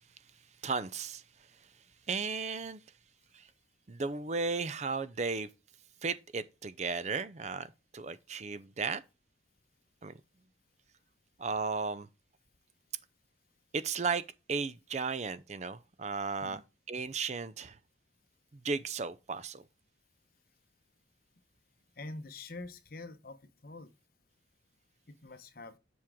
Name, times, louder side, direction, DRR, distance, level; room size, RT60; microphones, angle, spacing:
voice 1, 0.6-1.2 2.1-2.8 3.3-3.4 3.9-5.5 6.0-7.7 7.9-9.0 10.0-10.1 11.4-12.1 13.7-14.2 14.5-16.6 16.9-17.8 18.5-19.6, right 4 dB, 35° right, 0.5 m, -35 dB
voice 2, 22.0-23.4 23.6-23.9 25.1-25.8, left 2 dB, 50° left, 0.9 m, -45 dB
7.5 x 6.2 x 3.5 m
head